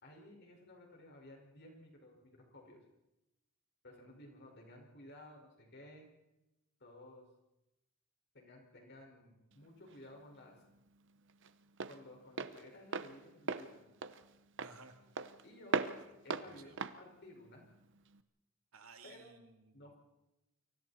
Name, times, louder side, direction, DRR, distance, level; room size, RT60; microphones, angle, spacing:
voice 1, 0.0-2.8 3.8-6.1 6.8-7.2 8.3-10.6 11.9-13.9 15.4-15.8 16.2-17.7 19.0-19.3 19.7-20.0, left 1 dB, 55° left, 1 dB, 5.0 m, -56 dB
Walk footsteps, 9.5-18.2, right 4 dB, 60° right, 1.0 m, -41 dB
voice 2, 14.6-15.0 16.0-16.1 16.5-16.8 18.7-19.9, right 4 dB, 85° right, 5 dB, 2.5 m, -58 dB
29.0 x 23.5 x 4.2 m, 0.96 s
head